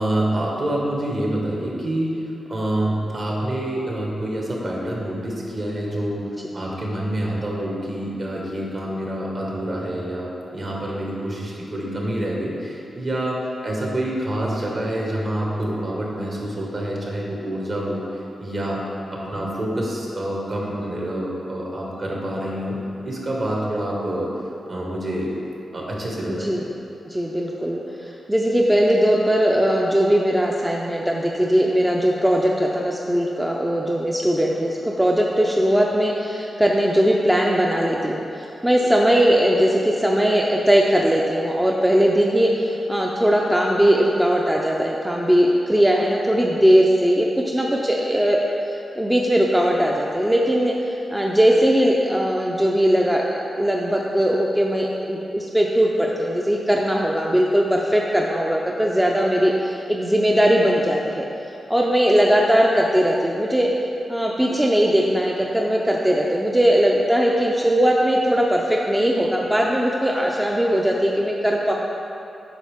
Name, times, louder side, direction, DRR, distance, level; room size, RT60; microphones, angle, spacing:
voice 1, 0.0-18.0 18.4-18.8 19.1-24.3 24.7-25.3 25.7-26.6, right 1 dB, 50° right, -3 dB, 1.6 m, -27 dB
voice 2, 26.3-26.6 27.1-48.4 48.9-61.2 61.7-63.7 64.1-71.7, equal, 10° right, -2 dB, 0.5 m, -19 dB
8.4 x 5.6 x 3.6 m, 2.8 s
cardioid pair, 95°, 0 cm